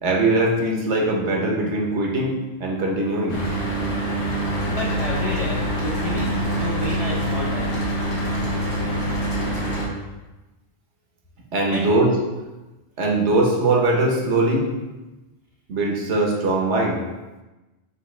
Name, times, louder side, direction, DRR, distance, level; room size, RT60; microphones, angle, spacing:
voice 1, 0.0-2.3 2.6-3.4 11.5-12.1 13.0-14.7 15.7-17.0, right 2 dB, 65° right, -1 dB, 1.1 m, -21 dB
Mechanical fan, 3.3-9.9, right 1 dB, 80° left, 1.4 m, -25 dB
voice 2, 4.7-7.9 11.7-11.9, left 1 dB, 50° left, -5 dB, 0.4 m, -31 dB
5.8 x 2.8 x 3.1 m, 1.1 s
omnidirectional pair, 1.3 m